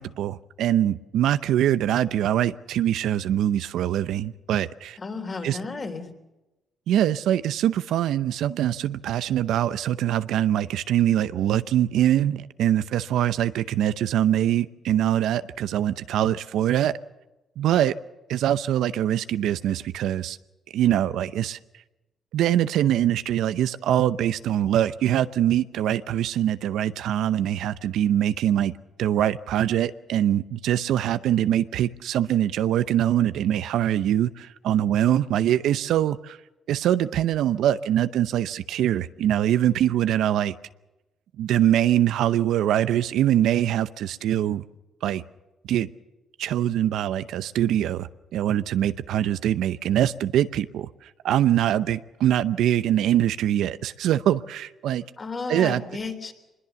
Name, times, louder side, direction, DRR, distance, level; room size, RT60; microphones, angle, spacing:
voice 1, 0.0-5.0 5.4-5.6 6.9-17.0 17.6-17.9 18.3-20.4 20.7-21.6 22.3-28.7 29.0-36.4 36.7-40.5 41.4-44.6 45.0-45.2 45.7-45.9 46.4-55.0 55.5-55.8, right 11 dB, 80° right, 0.7 m, -23 dB
voice 2, 5.0-6.1 55.2-56.3, left 4 dB, 35° left, 3.5 m, -33 dB
24.0 x 21.0 x 7.1 m
cardioid pair, 90°, 0 cm